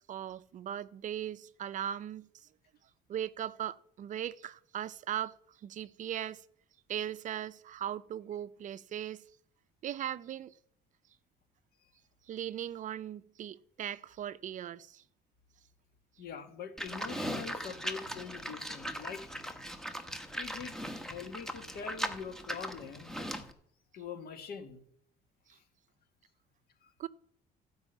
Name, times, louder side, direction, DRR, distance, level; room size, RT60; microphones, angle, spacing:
voice 1, 0.1-2.5 3.1-5.3 5.6-6.4 6.9-9.2 9.8-10.5 12.3-15.0 27.0-27.1, right 10 dB, 50° right, 0.5 m, -38 dB
voice 2, 16.2-19.3 20.4-23.2 23.9-24.8 25.5-25.6 26.8-26.9, left 6 dB, 65° left, 1.8 m, -44 dB
Livestock farm animals working animals, 16.8-23.5, equal, 5° left, 1.2 m, -39 dB
15.0 x 5.3 x 8.0 m
cardioid pair, 110°, 17 cm